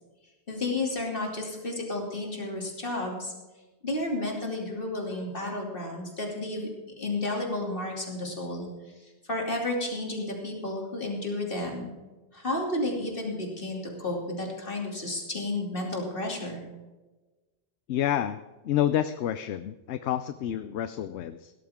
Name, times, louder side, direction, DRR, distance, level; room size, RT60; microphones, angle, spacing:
voice 1, 0.5-3.3 3.8-6.7 7.0-8.7 9.3-11.9 12.3-16.6, left 2 dB, 55° left, 0 dB, 3.0 m, -32 dB
voice 2, 17.9-21.5, left 11 dB, 80° left, 12 dB, 0.9 m, -29 dB
17.0 x 13.0 x 3.6 m, 1.2 s
omnidirectional pair, 1.1 m